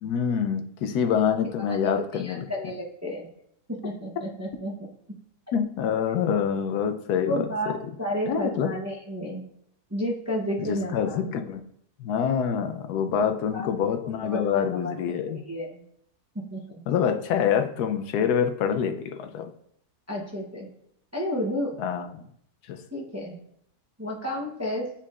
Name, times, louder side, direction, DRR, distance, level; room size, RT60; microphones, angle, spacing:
voice 1, 0.0-2.7 5.5-7.5 8.3-8.7 10.6-11.6 12.0-15.4 16.9-19.5 21.8-22.2 22.7-22.8, left 7 dB, 80° left, 7 dB, 1.1 m, -26 dB
voice 2, 1.7-3.2 3.7-4.7 7.3-9.4 9.9-11.2 13.2-13.7 14.2-14.9 15.5-15.8 16.5-16.6 20.1-20.7 21.1-21.7 22.9-23.4 24.0-24.9, equal, 20° right, -3 dB, 0.4 m, -31 dB
8.6 x 4.5 x 2.4 m, 0.70 s
omnidirectional pair, 1.7 m